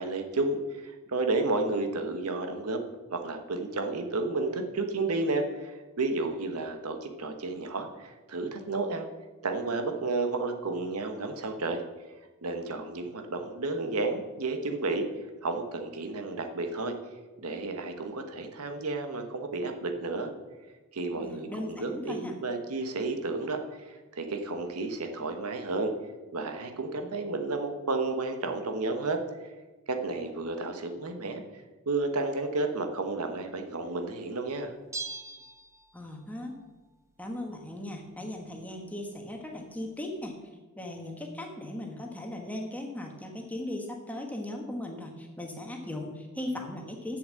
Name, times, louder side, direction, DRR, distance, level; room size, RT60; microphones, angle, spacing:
voice 1, 0.0-2.8 3.1-9.1 9.4-11.8 12.4-15.1 15.4-16.9 17.4-20.3 20.9-23.9 24.2-25.9 26.3-29.2 29.9-31.4 31.9-34.7, right 3 dB, 80° right, 6 dB, 1.2 m, -32 dB
voice 2, 21.2-22.4 35.9-36.5 37.2-40.3 40.8-47.2, left 1 dB, 5° left, 2 dB, 1.4 m, -38 dB
Bell, 34.9-36.3 36.6-36.7, right 3 dB, 15° right, 0.6 m, -40 dB
7.9 x 7.2 x 7.5 m, 1.2 s
head